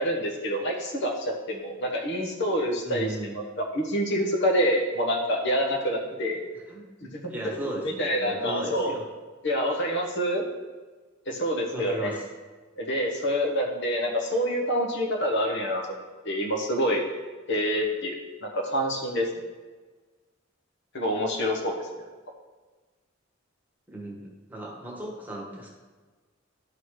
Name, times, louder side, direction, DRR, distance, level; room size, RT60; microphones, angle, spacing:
voice 1, 0.0-6.4 7.0-7.6 7.8-8.9 9.4-10.4 11.3-12.2 12.8-15.9 16.2-17.0 17.5-19.5 20.9-21.9, equal, 60° left, 1 dB, 1.3 m, -27 dB
voice 2, 2.8-3.4 6.7-6.8 7.3-9.0 11.7-12.2 23.9-25.7, right 1 dB, 10° right, -2 dB, 1.4 m, -36 dB
12.0 x 4.1 x 4.8 m, 1.3 s
head